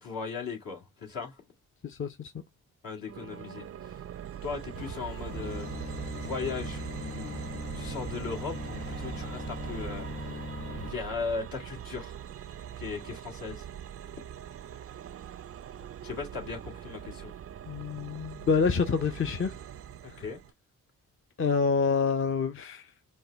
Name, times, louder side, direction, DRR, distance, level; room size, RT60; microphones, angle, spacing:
voice 1, 0.0-1.3 2.8-4.0 4.4-5.7 6.1-7.4 7.7-10.1 10.8-12.2 12.8-13.6 16.0-17.3 20.2-20.4, left 5 dB, 65° left, 1.8 m, -37 dB
voice 2, 1.8-2.3 17.7-19.5 20.2-20.3 21.4-22.9, left 5 dB, 35° left, 0.6 m, -27 dB
sound 1, 3.1-20.5, right 10 dB, 40° right, 0.4 m, -42 dB
sound 2, 4.7-10.9, left 2 dB, 85° left, 1.5 m, -39 dB
5.4 x 2.2 x 3.2 m
supercardioid pair, 40°, 37 cm